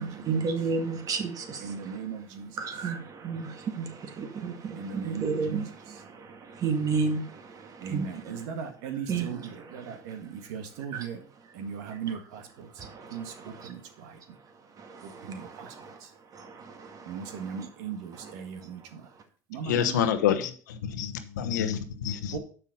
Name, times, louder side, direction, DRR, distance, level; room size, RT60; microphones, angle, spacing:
voice 1, 0.0-1.7 2.6-8.0 9.1-9.3 9.9-10.0 10.9-11.0 12.8-13.2 13.6-13.7 14.8-15.3 15.8-16.0 16.3-17.2, right 5 dB, 40° right, 2.0 m, -32 dB
voice 2, 1.6-2.6 4.7-6.0 7.8-11.2 11.5-12.7 13.1-14.4 15.0-15.7 16.0-16.1 17.0-19.1 19.5-20.0 22.3-22.4, right 7 dB, 75° right, 1.7 m, -38 dB
voice 3, 19.6-22.4, left 9 dB, 90° left, 1.0 m, -28 dB
7.9 x 5.9 x 5.4 m
supercardioid pair, 90°, 9 cm